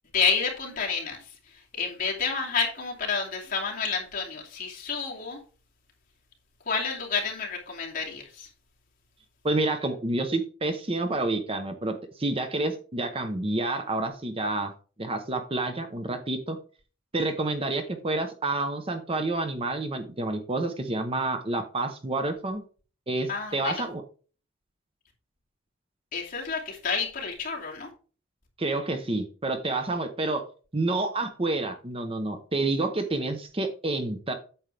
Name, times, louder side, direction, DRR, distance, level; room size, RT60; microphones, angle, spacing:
voice 1, 0.1-1.2 1.7-5.4 6.7-8.5 23.3-23.8 26.1-27.9, left 5 dB, 45° left, -2 dB, 2.7 m, -29 dB
voice 2, 9.4-11.9 12.2-14.7 15.0-16.6 17.1-22.6 23.1-24.0 28.6-30.4 30.7-34.3, right 2 dB, 30° right, 7 dB, 0.9 m, -29 dB
9.0 x 7.2 x 3.4 m, 0.37 s
head